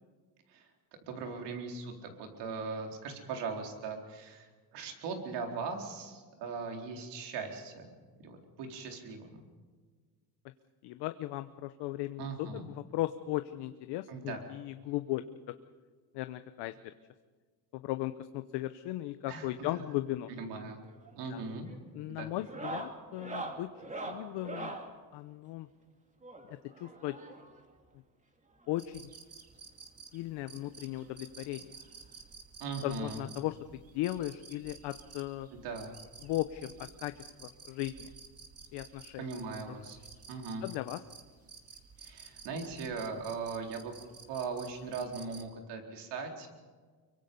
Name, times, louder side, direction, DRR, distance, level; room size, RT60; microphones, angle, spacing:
voice 1, 1.1-7.9 8.2-9.4 12.2-12.7 14.1-14.4 19.3-19.8 20.4-20.8 21.1-21.7 22.1-22.3 32.6-33.3 35.5-35.9 39.2-40.0 40.3-40.6 42.0-43.9 44.3-46.5, right 4 dB, 75° right, 3 dB, 4.1 m, -39 dB
voice 2, 10.8-15.6 16.1-16.9 17.7-20.3 21.3-21.4 21.9-23.7 24.0-24.8 25.1-25.7 26.5-27.2 28.7-29.1 30.1-31.8 32.8-35.5 36.2-38.1 38.7-39.2 39.7-39.9 40.6-41.0, left 15 dB, 80° left, 10 dB, 0.9 m, -37 dB
sound 1, 20.8-21.2 21.5-21.8 22.4-24.9 26.2-27.6 28.6-28.7 28.9-29.1 29.5-29.6 30.9-31.0 32.3-32.4, right 2 dB, 20° right, 2.6 m, -42 dB
sound 2, 28.8-45.5, right 5 dB, 35° right, 2.3 m, -52 dB
25.0 x 23.5 x 5.4 m, 1.5 s
cardioid pair, 120°, 41 cm